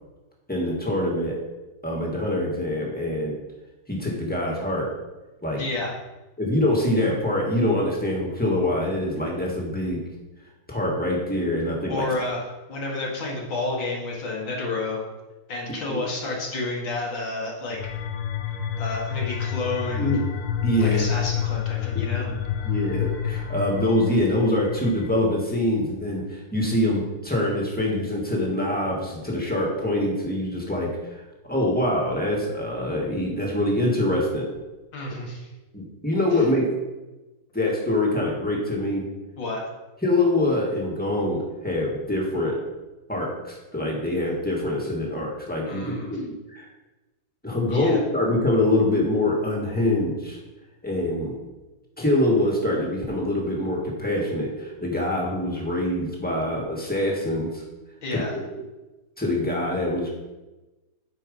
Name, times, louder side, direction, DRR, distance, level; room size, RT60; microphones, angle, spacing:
voice 1, 0.5-1.4 1.8-3.4 3.9-4.9 5.4-5.6 6.4-10.0 10.7-12.1 15.8-16.0 20.0-20.2 20.6-21.1 22.2-22.3 22.6-34.5 35.7-36.7 37.5-39.1 40.0-42.6 43.1-46.6 47.4-50.4 50.8-51.4 52.0-57.6 58.1-58.4 59.2-60.1, left 1 dB, 5° left, -3 dB, 1.6 m, -24 dB
voice 2, 5.6-5.9 11.9-12.4 12.7-15.0 15.5-17.8 18.8-20.1 20.8-22.3 34.9-35.5 39.4-39.6 45.7-46.1 47.7-48.0 58.0-58.4, left 2 dB, 60° left, -2 dB, 2.2 m, -30 dB
sound 1, 17.8-25.1, left 9 dB, 80° left, 1.6 m, -28 dB
8.9 x 4.7 x 5.4 m, 1.1 s
omnidirectional pair, 2.4 m